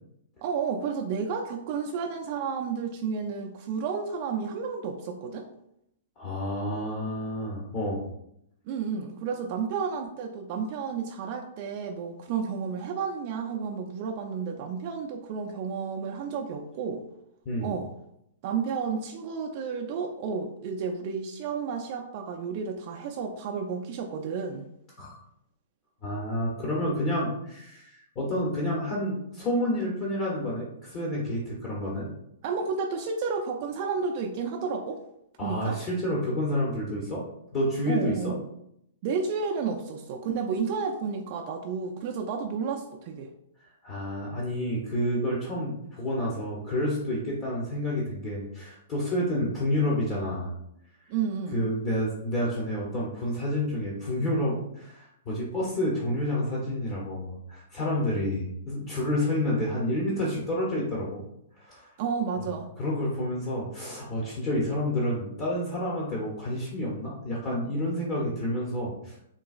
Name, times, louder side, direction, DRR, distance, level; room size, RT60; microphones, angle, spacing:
voice 1, 0.4-5.5 8.7-17.0 17.6-17.9 18.4-24.7 32.4-35.0 35.4-35.8 37.9-38.5 39.0-43.3 51.1-51.6 62.0-62.7, right 5 dB, 45° right, 2 dB, 0.3 m, -31 dB
voice 2, 6.2-8.0 17.5-17.7 25.0-25.2 26.0-32.1 35.4-37.2 37.5-38.3 43.8-50.5 51.5-61.2 61.6-61.9 62.8-69.3, left 1 dB, 35° left, -5 dB, 0.9 m, -29 dB
3.8 x 2.3 x 2.4 m, 0.78 s
hypercardioid pair, 120°, 0 cm